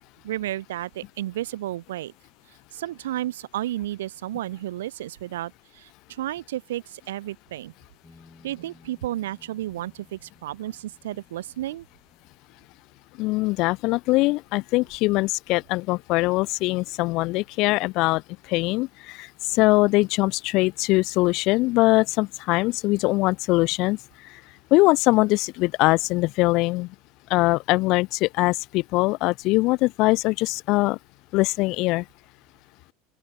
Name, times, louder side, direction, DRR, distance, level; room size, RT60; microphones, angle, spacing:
voice 1, 0.2-2.1 2.7-7.7 8.4-11.9, right 14 dB, 90° right, 0.6 m, -32 dB
sound 1, 8.0-17.1, left 3 dB, 15° left, 4.5 m, -59 dB
voice 2, 13.2-18.2 18.5-24.0 24.7-26.9 27.3-31.0 31.3-32.0, left 22 dB, 55° left, 0.5 m, -22 dB
open air
supercardioid pair, 120°, 0 cm